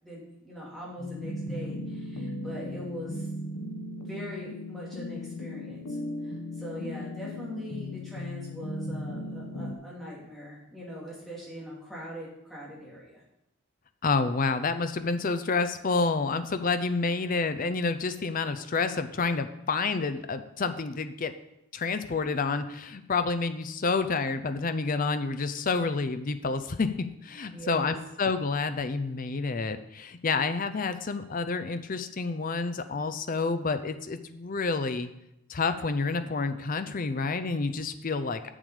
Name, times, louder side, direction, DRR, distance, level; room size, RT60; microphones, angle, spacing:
voice 1, 0.0-3.3 4.0-6.0 6.2-13.2 27.5-28.0, equal, ahead, -7 dB, 2.5 m, -42 dB
sound 1, 1.0-9.8, left 1 dB, 85° left, 0.9 m, -37 dB
voice 2, 14.0-21.3 21.7-35.1 35.5-38.5, left 4 dB, 40° left, 10 dB, 0.5 m, -29 dB
7.3 x 7.0 x 4.9 m, 0.85 s
head